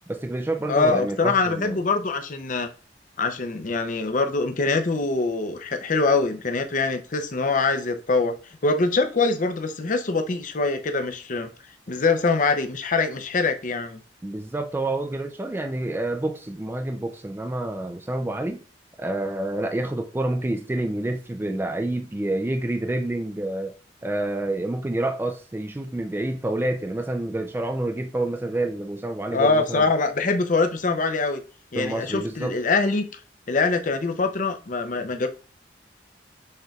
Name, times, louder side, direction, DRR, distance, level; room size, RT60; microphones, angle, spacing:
voice 1, 0.1-1.8 14.2-18.6 19.0-23.7 24.0-29.8 31.7-32.6, right 1 dB, 15° right, 0.3 m, -28 dB
voice 2, 0.7-2.7 3.2-8.3 8.6-11.5 11.9-14.0 29.3-31.4 31.7-33.0 33.5-35.3, left 3 dB, 45° left, 0.6 m, -23 dB
6.5 x 3.2 x 2.3 m
head